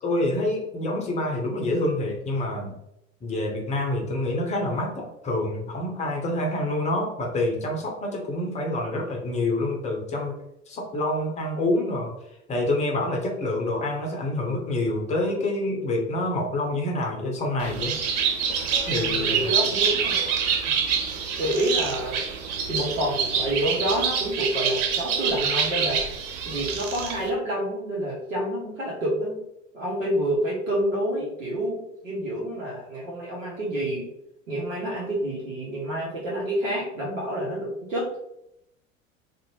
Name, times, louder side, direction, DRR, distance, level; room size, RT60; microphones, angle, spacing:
voice 1, 0.0-2.8 3.2-10.3 10.7-12.1 12.5-17.9 18.9-19.4, left 1 dB, 15° left, 0 dB, 0.6 m, -27 dB
Bird, 17.6-27.3, right 6 dB, 35° right, 0.4 m, -26 dB
voice 2, 18.9-20.2 20.6-20.8 21.4-22.2 22.7-26.1 26.4-29.4 29.7-34.0 34.5-38.2, right 1 dB, 75° right, -6 dB, 0.8 m, -28 dB
2.6 x 2.1 x 2.8 m, 0.82 s
figure-of-eight pair, 75°, 39 cm